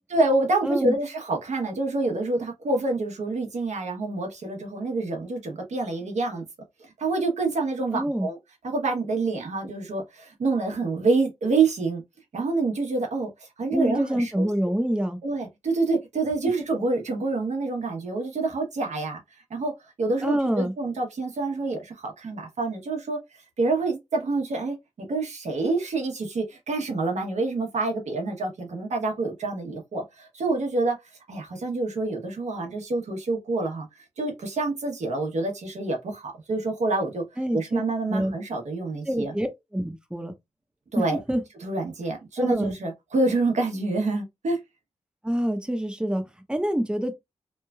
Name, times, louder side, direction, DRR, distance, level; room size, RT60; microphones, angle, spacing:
voice 1, 0.1-6.4 6.8-8.4 8.6-12.0 12.3-14.5 15.2-19.2 19.5-19.7 20.0-31.0 31.3-39.3 40.9-41.2 41.6-44.6, right 3 dB, 80° right, 1.0 m, -27 dB
voice 2, 0.6-1.0 7.9-8.3 13.7-15.2 20.2-20.7 37.4-37.8 38.1-38.3 39.1-39.5 39.7-40.3 41.0-41.4 42.4-42.7 45.2-46.2 46.5-47.1, equal, 10° right, 0.7 m, -26 dB
3.1 x 2.2 x 2.3 m
cardioid pair, 50°, 12 cm